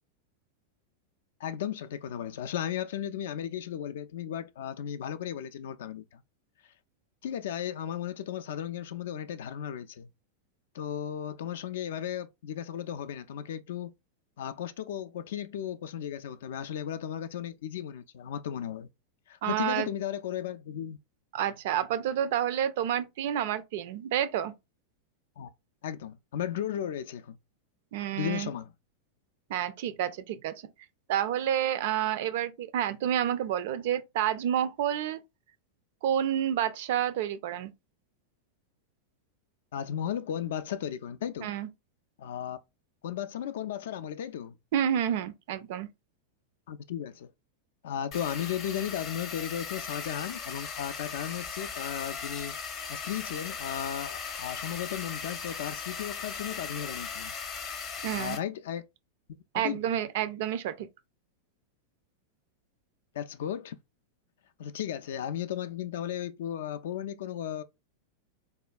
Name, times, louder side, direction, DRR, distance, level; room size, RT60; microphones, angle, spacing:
voice 1, 1.4-6.2 7.2-10.1 10.7-13.9 14.4-18.9 19.3-21.0 25.4-25.5 25.8-27.4 28.1-28.7 39.7-41.5 42.2-42.6 43.0-44.5 46.7-47.3 47.8-52.6 52.9-57.3 58.1-58.8 59.3-59.8 63.1-63.8 64.6-67.6, left 10 dB, 55° left, 0.3 m, -35 dB
voice 2, 19.4-19.9 21.3-24.5 27.9-28.5 29.5-30.5 31.1-35.2 36.0-37.7 41.4-41.7 44.7-45.9 58.0-58.4 59.5-60.9, right 10 dB, 50° right, 0.3 m, -29 dB
sound 1, 48.1-58.4, left 6 dB, 35° left, 0.7 m, -38 dB
3.5 x 2.2 x 2.3 m
figure-of-eight pair, 90°, 0 cm